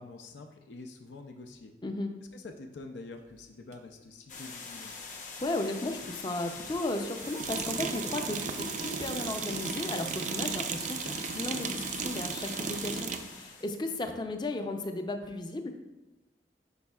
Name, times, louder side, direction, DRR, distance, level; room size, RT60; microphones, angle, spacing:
voice 1, 0.0-1.7 2.3-4.9, left 3 dB, 85° left, 4 dB, 0.5 m, -46 dB
voice 2, 1.8-2.1 5.4-15.7, left 2 dB, 25° left, 6 dB, 0.5 m, -35 dB
sound 1, 3.7-3.8 7.2-13.3, right 6 dB, 45° right, 0.4 m, -35 dB
sound 2, 4.3-13.7, left 4 dB, 45° left, 0.8 m, -43 dB
9.6 x 5.0 x 2.3 m, 1.1 s
head